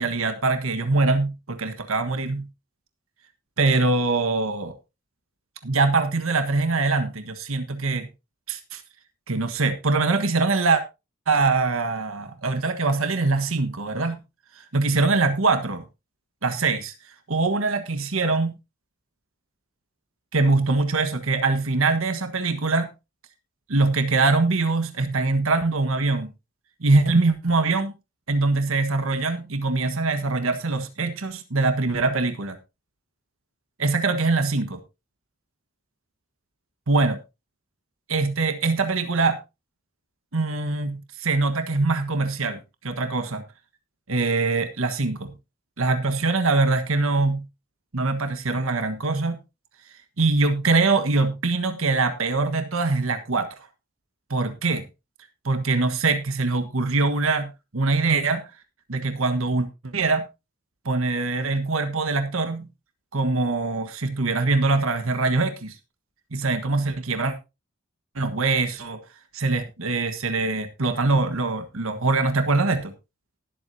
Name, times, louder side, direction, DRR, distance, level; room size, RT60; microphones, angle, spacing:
voice 1, 0.0-2.5 3.6-4.7 5.6-8.1 8.5-8.8 9.3-10.8 11.3-14.2 14.7-15.8 16.4-16.9 17.3-18.5 20.3-22.9 23.7-26.3 26.8-27.9 28.3-32.6 33.8-34.8 36.9-37.2 38.1-39.4 40.3-43.4 44.1-45.3 45.8-47.4 47.9-49.4 50.2-53.5 54.3-54.8 55.4-58.4 58.9-60.2 60.8-62.7 63.1-65.7 66.3-67.3 68.1-69.0 69.3-72.9, right 3 dB, 80° right, 8 dB, 1.4 m, -23 dB
19.0 x 8.0 x 2.8 m, 0.26 s
head